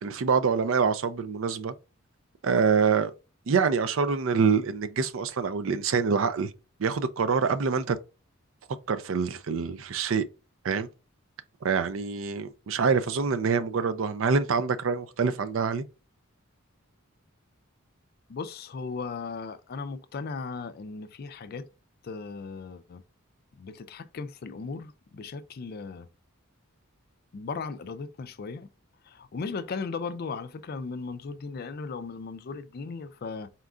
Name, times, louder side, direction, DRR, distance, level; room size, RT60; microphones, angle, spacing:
voice 1, 0.0-1.7 2.4-3.1 3.5-6.5 6.8-8.0 8.9-10.2 10.6-10.9 11.6-15.8, right 5 dB, 65° right, 0.4 m, -25 dB
voice 2, 18.3-21.7 22.0-23.0 23.6-26.1 27.3-28.7 29.0-33.5, left 4 dB, 45° left, 0.4 m, -37 dB
4.3 x 2.4 x 3.7 m
head